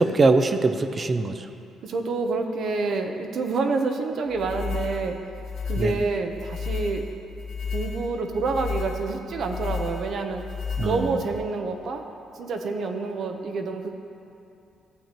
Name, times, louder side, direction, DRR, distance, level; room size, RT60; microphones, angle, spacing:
voice 1, 0.0-1.5 5.8-6.0 10.8-11.2, right 3 dB, 35° right, 9 dB, 0.5 m, -22 dB
voice 2, 1.8-5.2 5.6-7.0 7.7-10.4 10.8-12.0 12.3-13.9, right 3 dB, 65° right, 4 dB, 0.8 m, -28 dB
sound 1, 4.3-11.4, left 4 dB, 75° left, 1.8 m, -32 dB
14.0 x 7.3 x 3.0 m, 2.7 s
cardioid pair, 90°, 0 cm